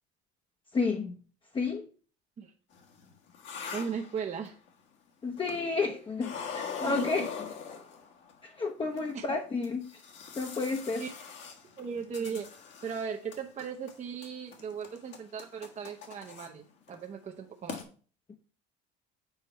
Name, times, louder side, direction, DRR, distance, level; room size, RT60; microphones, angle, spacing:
voice 1, 0.7-1.2 1.5-1.9 5.2-7.3 8.4-9.9 10.4-11.0, left 4 dB, 25° left, 0.8 m, -31 dB
sound 1, 2.8-4.7 5.4-5.9 6.2-8.3 9.0-9.1 9.6-13.0 13.3-13.9 14.2-16.5 16.9-17.1 17.4-17.5 17.7-17.8, left 6 dB, 65° left, 1.6 m, -41 dB
voice 2, 3.7-4.6 6.8-7.3 9.1-9.3 11.0-11.1 11.8-12.5 12.8-17.8, right 6 dB, 35° right, 0.8 m, -37 dB
7.1 x 4.5 x 4.4 m
supercardioid pair, 100°, 21 cm